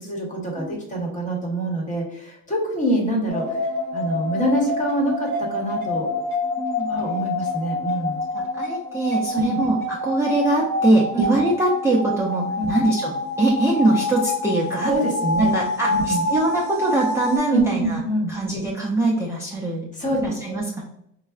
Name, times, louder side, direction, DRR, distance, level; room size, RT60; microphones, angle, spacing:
voice 1, 0.0-3.6 3.9-6.1 6.9-8.2 9.3-9.6 11.1-11.2 12.6-12.7 14.9-15.5 15.9-16.2 17.5-18.3 20.0-20.6, right 1 dB, 25° left, -1 dB, 1.0 m, -25 dB
sound 1, 3.3-17.4, left 2 dB, 80° left, 1.2 m, -27 dB
voice 2, 6.6-6.9 8.3-14.9 15.4-18.0 18.3-19.9 20.2-20.8, right 2 dB, 10° right, -5 dB, 0.4 m, -22 dB
4.5 x 2.0 x 2.3 m, 0.78 s
cardioid pair, 130°, 30 cm